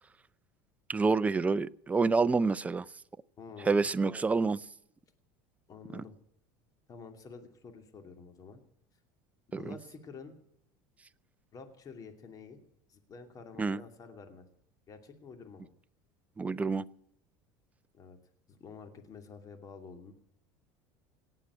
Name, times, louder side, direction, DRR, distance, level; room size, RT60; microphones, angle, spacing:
voice 1, 0.9-2.9 3.6-4.6 5.9-6.0 9.7-9.8 13.6-13.8 16.4-16.8, right 4 dB, 15° right, 15 dB, 0.5 m, -28 dB
voice 2, 3.4-3.9 5.7-6.1 6.9-8.6 9.5-10.4 11.5-12.6 12.9-14.4 14.9-15.7 17.9-18.2 18.5-20.1, left 5 dB, 35° left, 6 dB, 2.6 m, -49 dB
18.0 x 7.5 x 9.7 m, 0.74 s
supercardioid pair, 115°, 11 cm